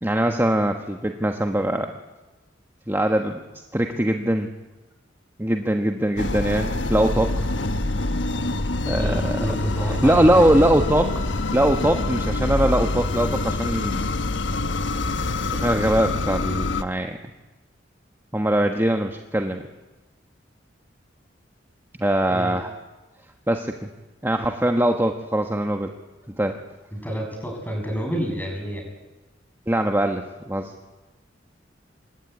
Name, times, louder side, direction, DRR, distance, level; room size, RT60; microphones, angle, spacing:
voice 1, 0.0-1.9 2.9-3.4 3.7-4.5 5.4-7.5 8.9-9.4 10.0-11.1 11.5-14.0 15.5-17.2 18.3-19.6 22.0-22.7 23.5-23.7 24.2-25.9 26.4-26.6 29.7-30.7, right 1 dB, 15° right, 4 dB, 1.4 m, -22 dB
sound 1, 6.2-16.8, left 2 dB, 80° left, 1.3 m, -25 dB
voice 2, 8.9-10.5 22.3-22.5 26.9-28.8, equal, 10° left, 2 dB, 7.6 m, -29 dB
26.0 x 22.0 x 9.8 m, 1.1 s
head